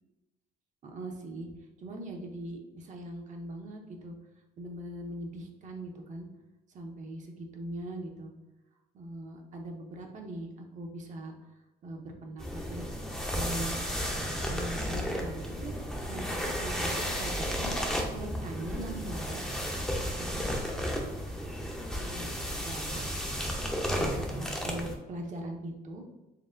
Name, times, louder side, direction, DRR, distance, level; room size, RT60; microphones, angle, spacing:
voice 1, 0.8-1.5 1.8-4.1 4.6-6.3 6.7-8.3 8.9-11.3 11.8-12.9 13.3-13.7 14.5-15.8 16.1-17.7 18.1-19.6 20.2-20.4 22.0-23.1 24.0-26.0, right 1 dB, 45° right, 2 dB, 0.7 m, -41 dB
sound 1, 12.4-24.9, equal, 5° left, 0.6 m, -33 dB
4.2 x 3.5 x 2.5 m, 1.0 s
cardioid pair, 110°, 17 cm